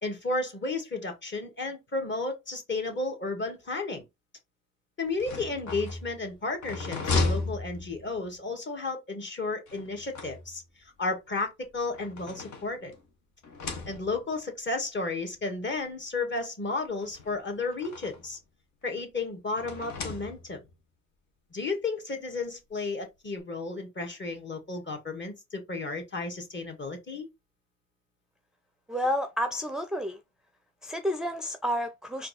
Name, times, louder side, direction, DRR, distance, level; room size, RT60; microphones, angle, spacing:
voice 1, 0.0-4.0 5.0-10.6 11.0-12.9 13.9-18.4 18.8-20.6 21.5-27.3, left 3 dB, 40° left, 1.7 m, -33 dB
sound 1, 5.0-8.4 9.7-10.8 11.7-13.1 13.4-14.4 15.3-15.4 15.7-15.8 17.0-18.4 19.6-20.7, left 3 dB, 70° left, 1.2 m, -35 dB
voice 2, 28.9-30.2 30.8-32.3, equal, ahead, 0.5 m, -30 dB
4.4 x 2.8 x 4.1 m
cardioid pair, 90°, 30 cm